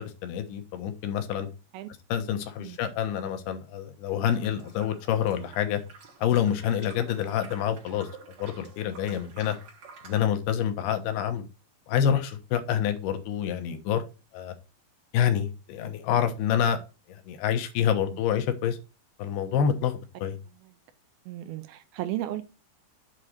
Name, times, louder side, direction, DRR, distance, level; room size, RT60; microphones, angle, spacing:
voice 1, 0.0-1.5 2.1-5.8 6.2-8.1 8.4-9.6 10.0-11.5 11.9-14.0 14.3-14.5 15.1-16.8 17.1-18.8 19.2-20.4, left 9 dB, 80° left, 2.9 m, -27 dB
sound 1, 4.2-10.2, right 4 dB, 60° right, 1.5 m, -49 dB
voice 2, 21.3-22.4, right 13 dB, 80° right, 2.4 m, -34 dB
7.4 x 4.0 x 6.5 m
omnidirectional pair, 4.5 m